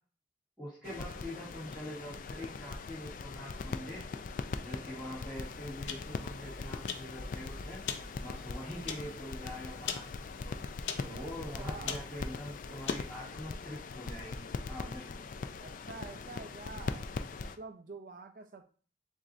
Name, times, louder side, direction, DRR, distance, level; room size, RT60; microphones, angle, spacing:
voice 1, 0.6-4.0 4.6-7.8 8.2-10.1 10.4-10.5 11.0-15.2, left 1 dB, ahead, -12 dB, 2.1 m, -44 dB
sound 1, 0.8-17.6, left 4 dB, 45° left, 0.3 m, -41 dB
sound 2, 5.4-13.2, left 6 dB, 90° left, 0.6 m, -44 dB
voice 2, 11.6-12.0 15.6-18.6, right 3 dB, 50° right, 5 dB, 0.4 m, -48 dB
7.3 x 2.6 x 2.5 m, 0.42 s
head